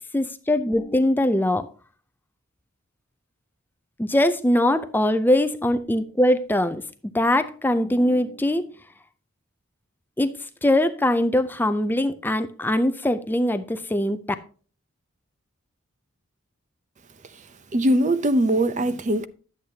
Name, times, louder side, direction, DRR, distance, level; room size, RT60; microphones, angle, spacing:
voice 1, 0.1-1.7 4.0-6.8 7.1-8.7 10.2-14.2, left 1 dB, 10° left, 0.4 m, -22 dB
voice 2, 17.7-19.3, right 1 dB, 35° right, 0.6 m, -21 dB
11.0 x 7.9 x 2.8 m
head